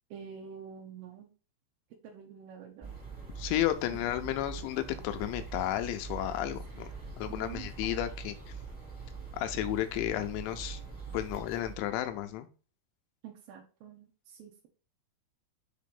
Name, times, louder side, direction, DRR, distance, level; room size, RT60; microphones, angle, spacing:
voice 1, 0.1-1.3 2.0-2.9 6.4-6.8 7.3-7.7 13.2-14.7, right 7 dB, 75° right, 0 dB, 2.3 m, -48 dB
sound 1, 2.8-12.3, right 5 dB, 10° right, 1.0 m, -43 dB
voice 2, 3.4-6.9 7.2-8.4 9.3-10.8 11.1-12.5, left 13 dB, 80° left, 9 dB, 2.7 m, -32 dB
6.7 x 3.1 x 5.2 m, 0.36 s
omnidirectional pair, 5.4 m